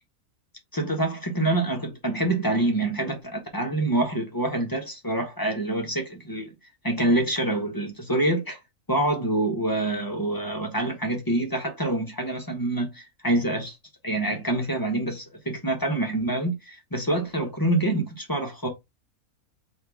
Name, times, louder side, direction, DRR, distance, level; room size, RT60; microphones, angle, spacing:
voice 1, 0.7-6.5 6.8-8.6 8.9-13.8 14.0-18.7, right 1 dB, 20° left, 0.6 m, -26 dB
3.6 x 2.7 x 4.5 m
omnidirectional pair, 1.5 m